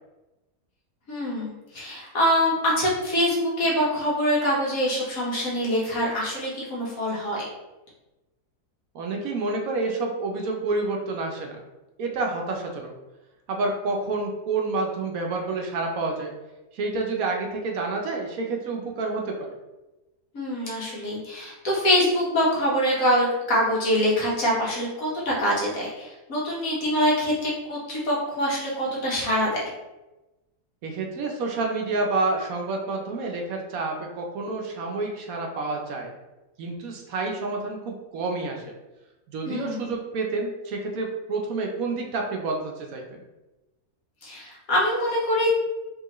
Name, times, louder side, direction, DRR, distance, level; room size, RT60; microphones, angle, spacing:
voice 1, 1.1-7.4 20.3-29.7 39.5-40.0 44.2-45.5, equal, 65° left, -4 dB, 1.5 m, -24 dB
voice 2, 8.9-11.5 12.0-12.9 13.5-16.3 16.7-19.5 30.8-36.1 36.6-38.6 39.3-43.2, right 3 dB, 70° right, 1 dB, 1.0 m, -29 dB
4.6 x 3.0 x 3.0 m, 1.1 s
omnidirectional pair, 1.7 m